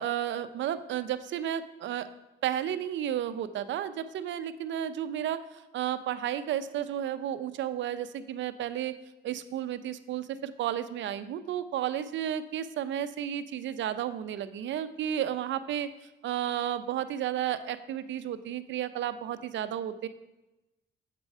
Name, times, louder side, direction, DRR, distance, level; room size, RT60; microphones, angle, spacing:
voice 1, 0.0-2.1 2.4-5.4 5.7-8.9 9.2-15.9 16.2-20.1, right 10 dB, 70° right, 12 dB, 0.5 m, -32 dB
7.5 x 4.7 x 5.3 m, 1.0 s
cardioid pair, 90°, 20 cm